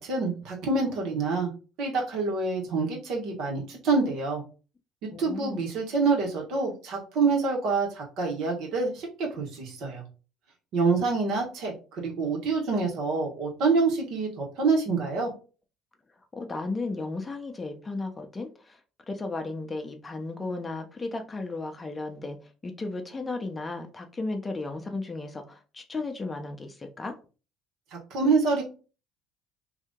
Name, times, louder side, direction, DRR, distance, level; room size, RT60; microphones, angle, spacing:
voice 1, 0.0-1.5 1.8-4.4 5.0-10.0 10.7-15.3 28.1-28.6, right 4 dB, 65° right, 0 dB, 1.4 m, -26 dB
voice 2, 5.1-5.7 16.3-18.8 19.1-22.4 22.6-27.1, left 3 dB, 25° left, 5 dB, 0.7 m, -34 dB
2.8 x 2.6 x 3.6 m, 0.35 s
hypercardioid pair, 70°, 0 cm